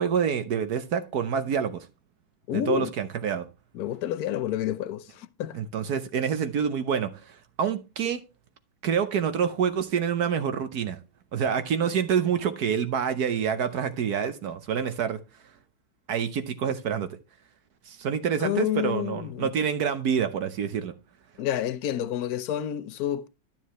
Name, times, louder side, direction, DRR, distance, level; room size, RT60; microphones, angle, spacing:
voice 1, 0.0-1.9 2.5-3.5 5.5-8.2 8.8-11.0 11.3-15.2 16.1-17.1 17.9-20.9, right 7 dB, 60° right, 1.2 m, -27 dB
voice 2, 2.5-2.9 3.7-5.6 18.4-19.5 21.4-23.3, left 12 dB, 65° left, 1.0 m, -29 dB
12.0 x 7.3 x 3.1 m
omnidirectional pair, 2.1 m